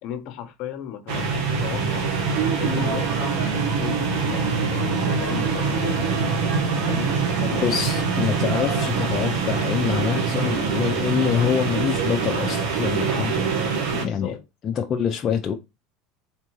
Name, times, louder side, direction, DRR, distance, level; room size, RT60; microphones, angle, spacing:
voice 1, 0.0-2.1 2.6-3.5 3.8-6.0 6.9-7.8 13.9-14.4, left 9 dB, 60° left, 0.9 m, -35 dB
sound 1, 1.1-14.1, right 5 dB, 70° right, 1.2 m, -24 dB
voice 2, 7.6-13.5 13.8-14.4 14.6-15.5, left 8 dB, 35° left, 0.5 m, -25 dB
3.7 x 3.3 x 3.0 m
supercardioid pair, 115°, 0 cm